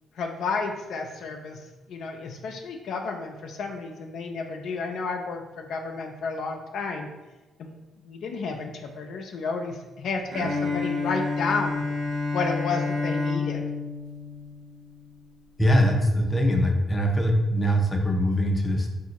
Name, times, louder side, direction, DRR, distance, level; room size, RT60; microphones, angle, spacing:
voice 1, 0.1-7.1 7.6-11.9 12.3-13.7, left 4 dB, 70° left, 3 dB, 0.4 m, -31 dB
Bowed string instrument, 10.3-15.2, left 3 dB, 55° right, 0.6 m, -29 dB
voice 2, 15.6-18.9, equal, 15° left, 1 dB, 0.6 m, -22 dB
3.5 x 2.5 x 2.9 m, 1.1 s
cardioid pair, 90°, 0 cm